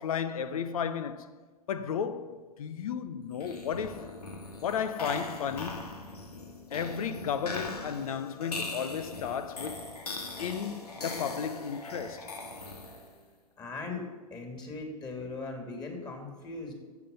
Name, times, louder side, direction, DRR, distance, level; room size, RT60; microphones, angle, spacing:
voice 1, 0.0-1.3 1.7-4.1 4.6-5.9 6.7-9.9 10.4-12.3, left 7 dB, 65° left, 0.8 m, -34 dB
sound 1, 3.3-13.2, left 2 dB, 80° left, 1.9 m, -40 dB
voice 2, 13.6-14.0 14.3-16.7, left 3 dB, 20° left, 2.8 m, -39 dB
14.0 x 7.1 x 5.5 m
hypercardioid pair, 110°, 19 cm